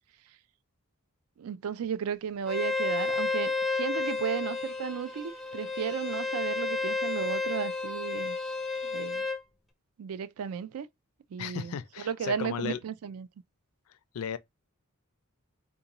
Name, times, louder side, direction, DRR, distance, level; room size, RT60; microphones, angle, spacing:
voice 1, 1.4-8.4 8.8-9.2 10.0-10.9 11.3-13.3, right 7 dB, 75° right, 0.3 m, -34 dB
Bowed string instrument, 2.5-9.4, left 3 dB, ahead, 0.5 m, -31 dB
voice 2, 11.4-12.8 14.1-14.4, left 7 dB, 75° left, 0.4 m, -35 dB
3.5 x 2.5 x 2.9 m
head